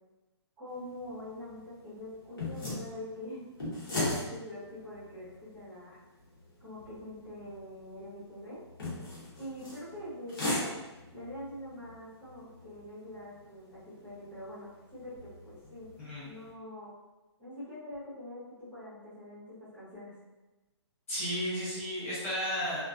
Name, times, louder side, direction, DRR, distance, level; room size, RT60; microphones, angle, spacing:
voice 1, 0.6-3.4 3.9-6.0 6.6-8.6 9.4-10.7 11.1-14.7 14.9-15.9 16.2-16.9 17.4-20.1, left 1 dB, 5° right, -13 dB, 0.7 m, -44 dB
sound 1, 0.7-16.5, left 2 dB, 50° left, 1.0 m, -41 dB
voice 2, 16.0-16.3 21.1-22.8, equal, 30° left, -8 dB, 0.7 m, -33 dB
2.3 x 2.3 x 2.4 m, 1.1 s
hypercardioid pair, 175°, 15 cm